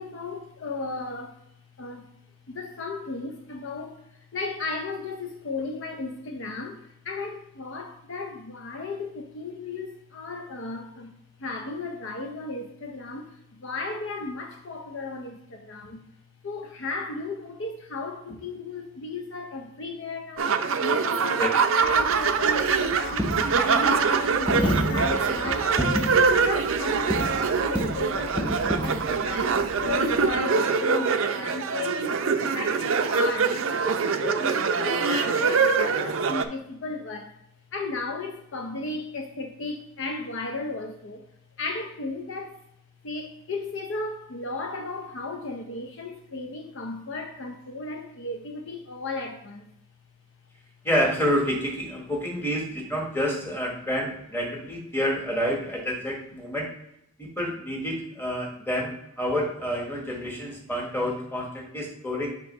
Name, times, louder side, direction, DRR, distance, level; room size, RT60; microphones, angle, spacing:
voice 1, 0.0-1.4 1.8-2.1 2.5-11.1 11.4-16.0 16.4-33.6 33.8-37.4 37.7-41.2 41.6-42.6 43.0-49.7, left 3 dB, 55° left, 4 dB, 0.6 m, -35 dB
sound 1, 20.4-36.4, right 5 dB, 60° right, 0.5 m, -24 dB
Coin (dropping), 21.8-30.4, equal, 5° right, 0.6 m, -31 dB
voice 2, 50.8-56.7 57.2-62.3, equal, 10° left, -1 dB, 1.3 m, -28 dB
6.2 x 2.9 x 5.3 m, 0.79 s
head